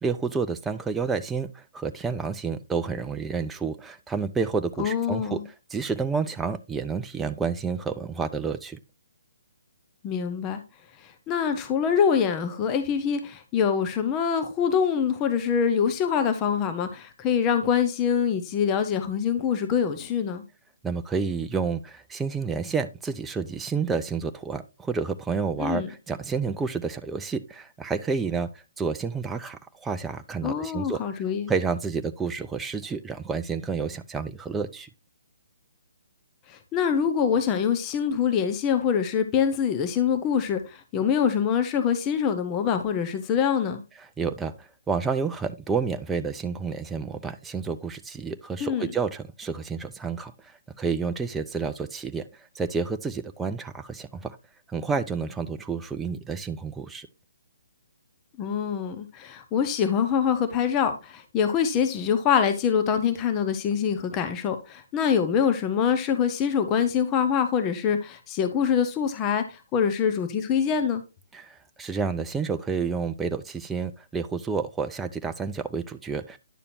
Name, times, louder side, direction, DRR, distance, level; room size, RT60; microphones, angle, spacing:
voice 1, 0.0-5.4 5.7-8.8 20.8-28.5 28.8-31.0 31.5-34.9 44.0-54.4 54.7-57.1 71.3-76.4, right 5 dB, 10° right, 0.5 m, -30 dB
voice 2, 4.8-5.4 10.0-10.6 11.0-20.4 25.6-25.9 30.4-31.5 36.5-43.8 48.6-48.9 58.4-71.0, left 7 dB, 20° left, 0.9 m, -25 dB
10.0 x 6.8 x 2.6 m
figure-of-eight pair, 135°, 0 cm